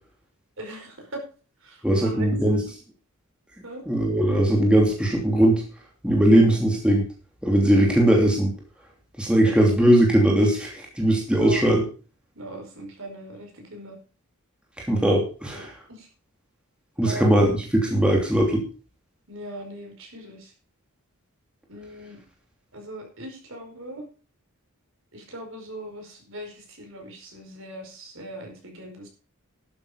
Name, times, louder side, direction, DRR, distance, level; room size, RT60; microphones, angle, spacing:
voice 1, 0.6-1.2 1.6-2.3 3.6-3.8 9.4-9.5 11.4-11.7 12.4-14.0 15.5-16.1 17.0-17.3 19.3-20.5 21.7-22.2 22.7-24.0 25.1-29.1, right 1 dB, 60° right, 2 dB, 5.1 m, -40 dB
voice 2, 1.8-2.6 3.9-5.6 6.0-7.0 7.4-8.5 9.2-11.9 14.8-15.7 17.0-18.6, right 1 dB, 5° right, -1 dB, 2.9 m, -19 dB
12.0 x 9.4 x 5.1 m, 0.36 s
head